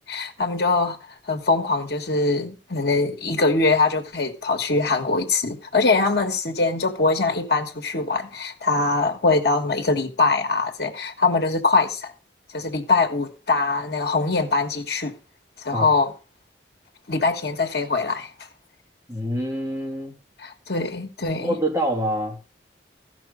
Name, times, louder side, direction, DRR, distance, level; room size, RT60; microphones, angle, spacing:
voice 1, 0.1-1.0 1.3-12.1 12.5-15.1 15.6-16.1 17.1-18.3 20.4-21.5, left 3 dB, 65° left, 1.7 m, -22 dB
voice 2, 19.1-20.1 21.4-22.4, equal, 15° right, 2.6 m, -26 dB
14.0 x 6.1 x 5.2 m
head